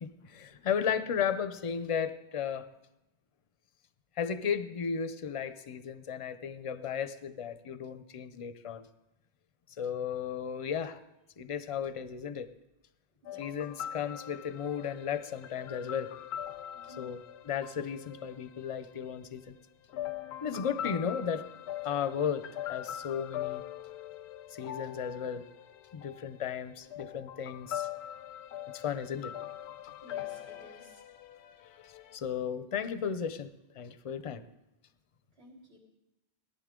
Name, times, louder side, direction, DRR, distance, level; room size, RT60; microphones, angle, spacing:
voice 1, 0.0-2.7 4.2-8.9 9.8-11.0 11.4-12.5 13.4-16.1 17.0-19.6 20.4-21.4 21.8-23.6 24.5-25.5 25.9-27.9 28.7-29.3 32.1-33.5 33.8-34.4, left 7 dB, 40° left, 12 dB, 0.5 m, -35 dB
sound 1, 13.2-19.3 19.9-32.2, left 11 dB, 85° left, 0.8 m, -42 dB
voice 2, 16.7-17.1 30.0-31.0 35.3-35.8, equal, 75° right, -4 dB, 3.6 m, -54 dB
18.0 x 11.0 x 3.7 m, 0.93 s
omnidirectional pair, 1.1 m